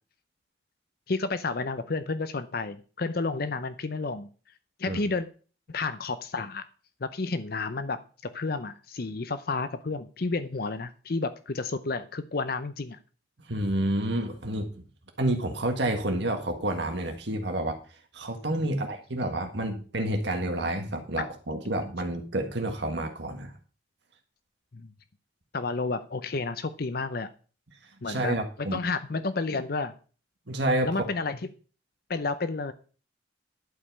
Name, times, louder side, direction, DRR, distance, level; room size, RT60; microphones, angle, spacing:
voice 1, 1.1-4.3 4.8-5.3 5.7-6.6 7.0-13.0 24.7-24.9 25.5-27.3 28.0-28.3 28.7-29.9 30.8-31.4 32.1-32.7, left 3 dB, 50° left, 11 dB, 0.6 m, -31 dB
voice 2, 13.5-14.7 15.2-17.8 18.1-23.5 28.1-28.8 30.5-31.0, right 1 dB, 65° right, 4 dB, 1.7 m, -29 dB
11.5 x 5.4 x 6.9 m, 0.39 s
head